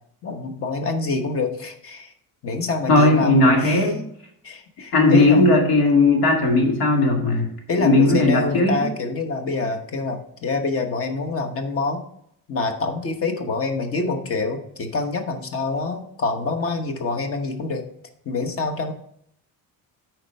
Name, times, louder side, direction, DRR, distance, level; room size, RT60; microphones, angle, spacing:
voice 1, 0.2-2.1 2.4-3.9 4.4-5.4 7.7-12.0 12.5-17.9 18.2-18.9, left 3 dB, 40° left, 6 dB, 1.1 m, -26 dB
voice 2, 2.9-4.0 4.9-7.5 7.8-8.8, left 2 dB, 85° left, 1 dB, 2.2 m, -17 dB
9.7 x 4.5 x 5.3 m, 0.71 s
cardioid pair, 165°, 36 cm